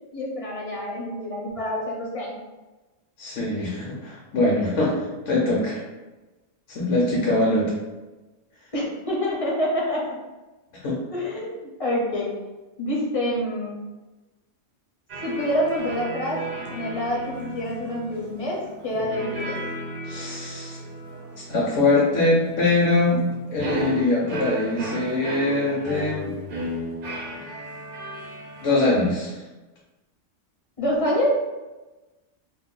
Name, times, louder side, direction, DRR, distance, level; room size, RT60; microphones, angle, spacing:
voice 1, 0.1-2.4 8.7-10.2 11.1-12.4 12.8-13.8 15.2-19.6 30.8-31.5, equal, 40° left, -4 dB, 0.5 m, -27 dB
voice 2, 3.2-5.8 6.7-7.7 10.8-11.0 20.0-20.8 21.5-26.4 28.6-29.4, left 2 dB, 75° left, -5 dB, 1.0 m, -23 dB
sound 1, 15.1-29.1, right 1 dB, 55° right, 0.7 m, -34 dB
2.5 x 2.1 x 3.6 m, 1.1 s
omnidirectional pair, 1.3 m